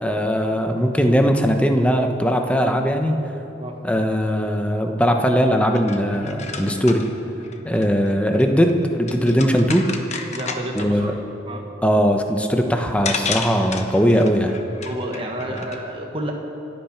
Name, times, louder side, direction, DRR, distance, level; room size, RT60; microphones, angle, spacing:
voice 1, 0.0-3.2 3.8-7.0 7.6-9.8 10.7-11.1 11.8-14.5 15.5-15.6, equal, 5° left, 4 dB, 1.0 m, -19 dB
sound 1, 5.6-11.0 12.5-12.6 13.1-15.8, left 5 dB, 35° left, 1.1 m, -32 dB
voice 2, 10.3-11.2 11.5-11.6 14.8-16.3, right 1 dB, 30° right, 1 dB, 1.3 m, -30 dB
26.5 x 9.0 x 5.9 m, 2.9 s
head